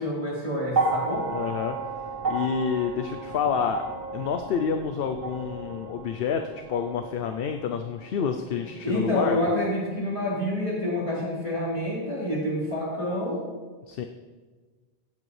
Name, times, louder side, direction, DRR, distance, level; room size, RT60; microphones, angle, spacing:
voice 1, 0.0-1.3 8.8-13.4, left 1 dB, 30° left, -8 dB, 4.1 m, -28 dB
sound 1, 0.7-9.0 10.1-10.2, right 3 dB, 45° right, 1.3 m, -33 dB
voice 2, 1.2-1.8 2.3-3.8 4.1-6.4 6.7-9.4 13.9-14.0, left 7 dB, 65° left, 6 dB, 0.7 m, -28 dB
16.5 x 7.8 x 3.2 m, 1.4 s
omnidirectional pair, 1.1 m